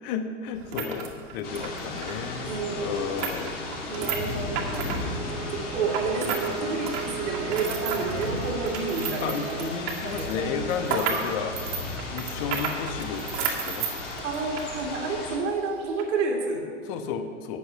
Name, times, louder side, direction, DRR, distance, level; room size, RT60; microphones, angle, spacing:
voice 1, 0.0-3.6 3.9-4.1 4.9-5.3 6.2-6.9 9.2-11.5 12.1-13.9 16.9-17.6, left 6 dB, 50° left, 7 dB, 1.2 m, -33 dB
sound 1, 0.5-6.5 6.8-14.7 15.0-15.1 15.8-16.0, right 7 dB, 55° right, 2.0 m, -33 dB
sound 2, 1.4-15.4, left 2 dB, 70° left, 2.7 m, -35 dB
voice 2, 2.4-3.2 3.9-4.8 5.5-9.8 10.0-10.5 14.2-16.7, right 3 dB, 70° right, 0 dB, 2.5 m, -30 dB
Bowed string instrument, 4.9-9.8, right 8 dB, 20° right, 0.5 m, -37 dB
12.0 x 8.0 x 5.7 m, 2.1 s
hypercardioid pair, 100°, 37 cm